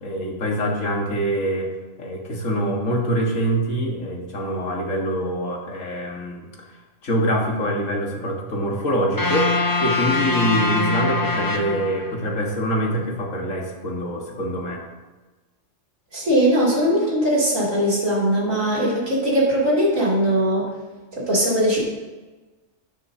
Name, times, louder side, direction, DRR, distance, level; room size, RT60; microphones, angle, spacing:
voice 1, 0.0-1.7 2.0-6.5 7.0-9.5 9.8-14.8, equal, 90° left, 0 dB, 2.1 m, -24 dB
sound 1, 9.2-12.4, left 3 dB, 20° left, 1.0 m, -23 dB
voice 2, 16.1-20.7 21.1-21.8, equal, 90° right, -6 dB, 3.4 m, -20 dB
11.5 x 10.5 x 2.8 m, 1.2 s
omnidirectional pair, 1.3 m